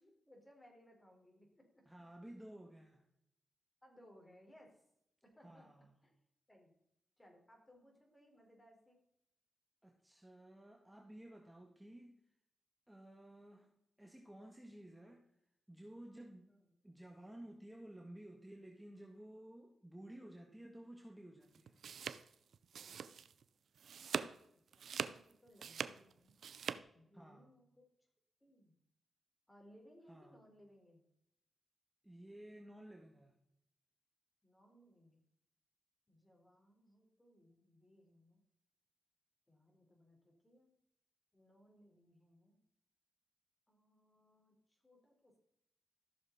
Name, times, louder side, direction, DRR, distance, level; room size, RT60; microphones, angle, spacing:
voice 1, 0.0-1.8 3.8-4.8 5.2-5.7 6.0-6.1 6.5-6.7 7.2-9.0 16.5-16.7 22.7-23.3 24.5-26.4 26.9-27.9 28.4-28.7 29.5-31.0 34.4-35.2 36.1-38.4 39.5-40.7 41.3-42.6 43.7-45.4, equal, 20° left, 1 dB, 4.3 m, -65 dB
voice 2, 1.9-3.0 5.4-5.9 9.8-12.2 12.9-13.7 14.0-15.3 15.7-16.6 16.8-21.8 27.1-27.5 30.1-30.4 32.0-33.3, right 1 dB, 10° right, 2 dB, 1.6 m, -54 dB
sound 1, 21.5-23.4 23.8-24.4 24.7-26.8, right 7 dB, 80° right, 0.5 m, -43 dB
14.5 x 6.9 x 4.1 m, 0.78 s
cardioid pair, 65°, 0 cm